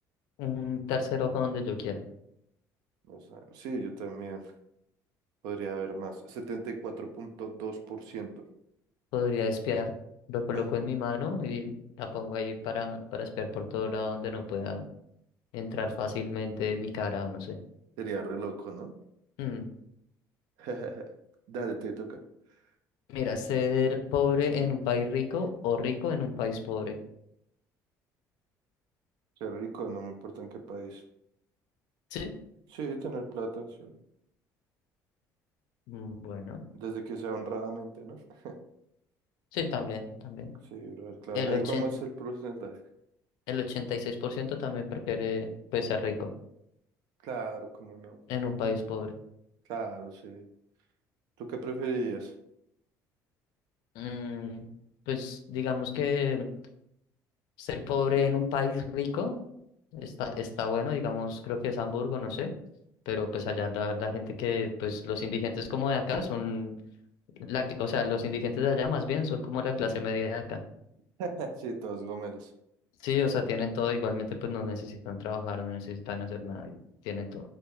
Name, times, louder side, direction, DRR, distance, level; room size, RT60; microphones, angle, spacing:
voice 1, 0.4-2.0 9.1-9.9 10.3-14.8 15.5-17.5 19.4-19.7 23.1-27.0 32.1-32.3 35.9-36.6 39.5-40.5 41.3-41.9 43.5-46.3 48.3-49.1 54.0-54.7 55.1-56.4 57.6-59.4 59.9-62.5 63.1-66.7 67.4-70.6 73.0-76.8 77.0-77.4, left 6 dB, 85° left, 5 dB, 0.4 m, -31 dB
voice 2, 3.1-4.5 5.4-8.3 10.5-10.7 18.0-18.9 20.6-21.0 21.5-22.2 29.4-31.0 32.7-33.9 36.7-38.6 40.7-42.8 47.2-48.2 49.7-50.5 51.4-52.3 71.2-72.5, right 4 dB, 80° right, 5 dB, 0.4 m, -36 dB
2.2 x 2.0 x 2.9 m, 0.76 s
cardioid pair, 140°, 7 cm